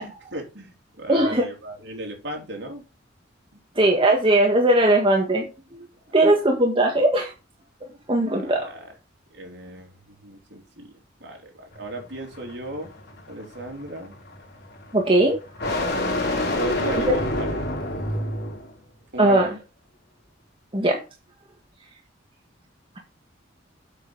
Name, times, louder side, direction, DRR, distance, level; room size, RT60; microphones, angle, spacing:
voice 1, 0.0-2.8 8.3-8.9 9.3-12.9 13.3-14.1 16.6-17.6 19.1-19.5, right 1 dB, 65° right, 2 dB, 3.6 m, -36 dB
voice 2, 1.1-1.4 3.7-5.5 5.7-5.8 6.1-7.3 8.1-8.7 14.9-15.4 19.2-19.5 20.7-21.0, right 1 dB, 30° right, 1 dB, 1.7 m, -19 dB
sound 1, 11.7-18.8, left 1 dB, 55° left, 4.0 m, -28 dB
8.2 x 6.6 x 5.6 m, 0.30 s
head